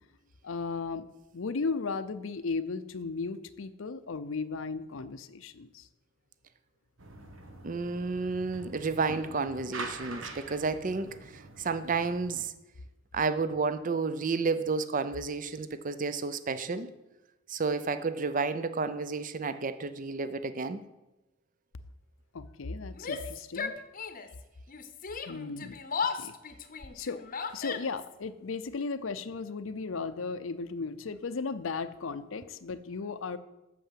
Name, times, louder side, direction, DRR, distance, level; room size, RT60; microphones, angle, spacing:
voice 1, 0.4-1.0 1.3-5.9 22.3-23.7 25.3-25.8 26.1-26.3 26.9-27.2 27.5-33.4, left 4 dB, 85° left, 12 dB, 0.6 m, -35 dB
sound 1, 7.0-12.4, right 3 dB, 90° right, 1.4 m, -44 dB
voice 2, 7.6-12.5 13.1-16.9 17.5-20.8, right 4 dB, 40° right, 12 dB, 0.6 m, -31 dB
Yell, 22.9-24.4 24.7-28.1, left 5 dB, 45° left, 0.8 m, -36 dB
8.5 x 7.0 x 7.5 m, 0.99 s
head